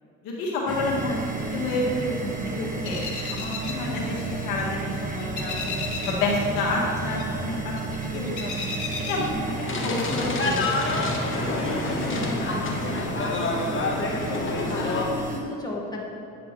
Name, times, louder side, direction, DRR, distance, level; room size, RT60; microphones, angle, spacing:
voice 1, 0.2-1.1 1.5-3.0 3.3-5.7 6.1-8.5 9.1-10.8 11.2-12.2 12.7-12.8 13.2-13.3, left 2 dB, 85° left, -4 dB, 1.5 m, -29 dB
sound 1, 0.7-15.4, right 4 dB, 25° right, 1.2 m, -32 dB
voice 2, 1.0-1.5 8.1-8.5 12.0-12.4 14.6-16.0, left 2 dB, 10° left, -3 dB, 1.7 m, -35 dB
sound 2, 2.8-4.8 5.1-6.3 6.6-9.8 10.1-10.7, left 5 dB, 60° left, 1.3 m, -35 dB
sound 3, 9.7-15.1, left 3 dB, 40° left, 1.2 m, -27 dB
9.2 x 5.9 x 3.1 m, 2.7 s
supercardioid pair, 70°, 33 cm